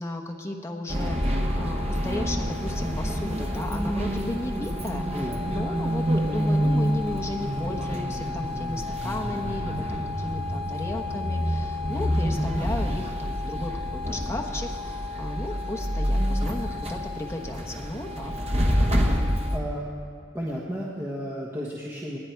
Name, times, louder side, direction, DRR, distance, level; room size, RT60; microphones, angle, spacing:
voice 1, 0.0-5.1 5.5-18.3, left 1 dB, 15° left, 1 dB, 1.0 m, -34 dB
sound 1, 0.9-19.6, equal, 35° right, 1.1 m, -27 dB
voice 2, 19.1-20.1 20.3-22.2, equal, 15° right, -5 dB, 1.2 m, -33 dB
19.5 x 10.0 x 4.6 m, 2.3 s
head